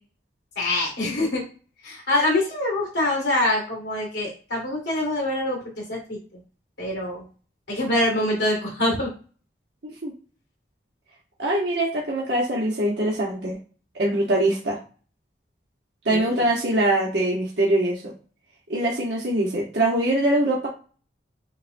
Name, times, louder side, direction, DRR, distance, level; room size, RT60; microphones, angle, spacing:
voice 1, 0.6-1.4 1.8-6.2 6.8-7.2 7.7-9.1 16.1-16.2, left 1 dB, 80° left, -1 dB, 1.9 m, -24 dB
voice 2, 11.4-13.6 13.9-14.8 16.0-18.1 18.7-20.7, right 1 dB, 75° right, -4 dB, 1.0 m, -23 dB
6.5 x 2.2 x 2.6 m, 0.39 s
head